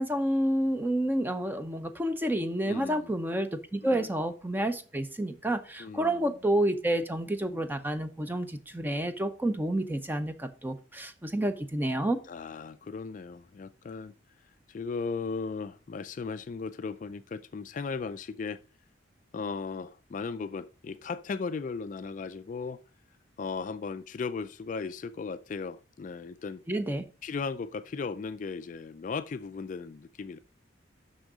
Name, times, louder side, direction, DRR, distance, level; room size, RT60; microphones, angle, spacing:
voice 1, 0.0-12.2 26.7-27.0, right 1 dB, 10° right, 0.6 m, -29 dB
voice 2, 2.6-3.2 3.8-4.1 5.8-6.3 12.3-14.1 14.7-18.6 19.3-22.8 23.4-26.6 27.2-30.4, left 4 dB, 40° left, 0.3 m, -36 dB
6.3 x 6.2 x 4.8 m
head